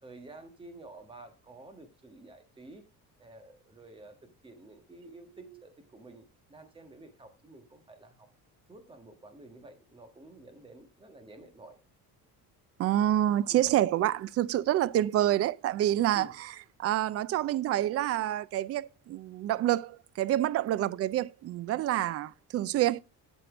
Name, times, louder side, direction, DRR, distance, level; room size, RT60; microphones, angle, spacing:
voice 1, 0.0-2.8 3.2-8.3 8.7-11.8 13.5-13.7 16.1-16.4, right 2 dB, 15° right, 1.5 m, -51 dB
voice 2, 12.8-16.3 16.8-23.0, right 13 dB, 40° right, 0.4 m, -27 dB
11.5 x 4.5 x 5.0 m
cardioid pair, 155°, 37 cm